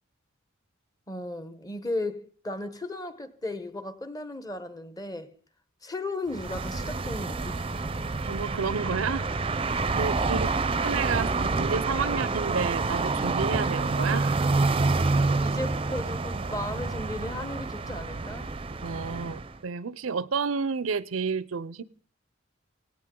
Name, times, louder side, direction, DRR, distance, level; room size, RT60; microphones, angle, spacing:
voice 1, 1.1-5.3 5.8-8.0 10.0-10.2 12.1-12.2 15.4-18.5, left 2 dB, 20° left, 1.0 m, -35 dB
sound 1, 6.3-19.6, right 3 dB, 25° right, 0.6 m, -28 dB
voice 2, 8.3-9.3 9.9-10.5 10.8-14.4 18.8-21.8, right 5 dB, 85° right, 0.6 m, -30 dB
18.0 x 17.0 x 3.8 m
head